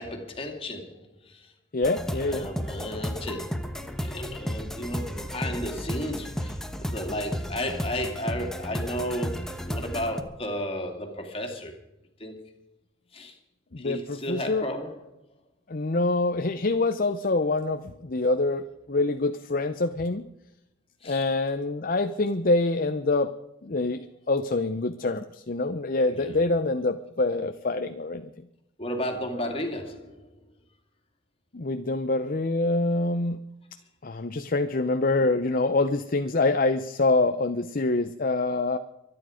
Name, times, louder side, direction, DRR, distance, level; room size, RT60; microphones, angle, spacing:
voice 1, 0.0-1.5 2.1-11.7 12.2-12.4 13.1-13.3 13.8-15.0 21.0-21.3 26.1-26.5 28.8-30.3, left 1 dB, 30° left, 3 dB, 2.7 m, -34 dB
voice 2, 1.7-2.5 13.7-14.7 15.7-20.3 21.0-23.3 23.6-28.3 31.5-33.4 34.0-38.8, left 2 dB, 45° left, 9 dB, 0.7 m, -25 dB
sound 1, 1.8-10.2, equal, 5° left, 1.1 m, -33 dB
24.5 x 10.0 x 5.1 m, 0.89 s
head